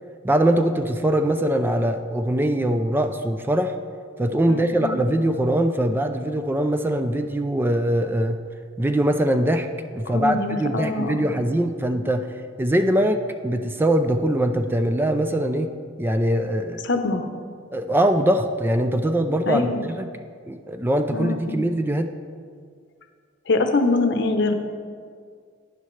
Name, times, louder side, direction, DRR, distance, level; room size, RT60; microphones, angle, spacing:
voice 1, 0.2-3.7 4.2-8.4 8.8-9.7 9.9-12.3 12.6-15.7 16.0-16.8 17.7-20.1 20.5-22.1, right 1 dB, 10° right, 7 dB, 0.4 m, -22 dB
voice 2, 4.5-5.0 10.1-11.3 16.8-17.2 19.5-19.8 21.1-21.6 23.5-24.5, left 3 dB, 65° left, 7 dB, 0.8 m, -24 dB
12.0 x 9.5 x 3.2 m, 2.1 s
head